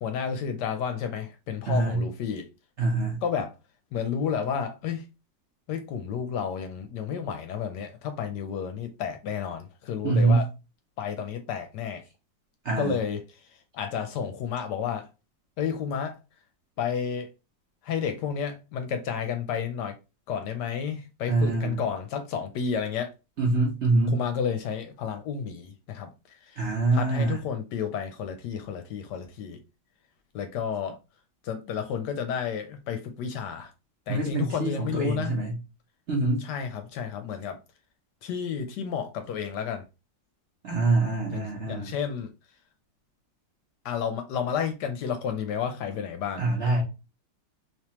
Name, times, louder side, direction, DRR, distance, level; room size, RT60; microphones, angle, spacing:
voice 1, 0.0-2.5 3.2-3.5 3.9-5.0 5.7-10.5 11.0-12.0 12.8-13.2 13.7-15.1 15.6-16.2 16.8-17.3 17.8-20.0 20.3-23.1 24.1-26.1 26.5-26.6 26.9-29.6 30.3-31.0 31.4-33.7 34.1-35.4 36.4-37.6 38.2-39.8 41.3-42.3 43.8-46.5, left 7 dB, 70° left, 1.1 m, -31 dB
voice 2, 1.7-2.0 2.8-3.2 10.0-10.4 12.6-12.9 21.3-21.8 23.4-24.2 26.6-27.4 34.1-35.5 36.1-36.4 40.6-41.9 46.4-46.8, right 3 dB, 50° right, 0.9 m, -24 dB
3.4 x 2.9 x 2.9 m
omnidirectional pair, 2.0 m